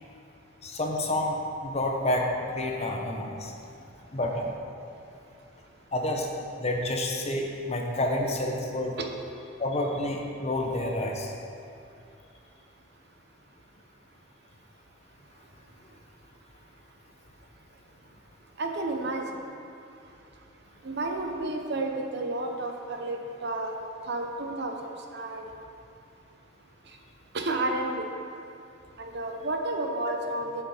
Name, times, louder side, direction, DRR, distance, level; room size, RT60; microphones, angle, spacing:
voice 1, 0.6-1.4 1.6-3.5 4.1-4.5 5.9-6.3 6.6-8.9 9.6-11.3, left 1 dB, 35° left, 1 dB, 0.9 m, -29 dB
voice 2, 18.6-19.2 20.8-23.8 24.1-25.4 27.3-28.0 29.0-30.6, right 2 dB, 60° right, 3 dB, 0.9 m, -31 dB
8.0 x 7.2 x 4.9 m, 2.5 s
head